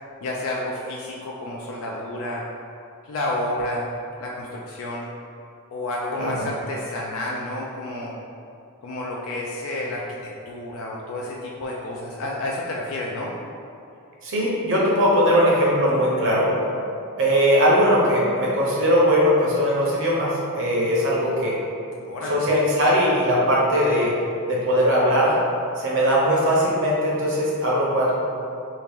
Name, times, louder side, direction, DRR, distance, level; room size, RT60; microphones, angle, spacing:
voice 1, 0.2-2.4 3.0-3.9 4.2-5.1 5.7-8.1 8.8-13.3 22.0-22.5, left 1 dB, 65° left, -3 dB, 0.4 m, -30 dB
voice 2, 6.2-6.5 14.2-16.5 17.2-21.6 22.3-24.1 24.5-25.4 25.8-28.1, equal, 60° right, -5 dB, 0.8 m, -20 dB
3.0 x 2.8 x 3.5 m, 2.6 s
head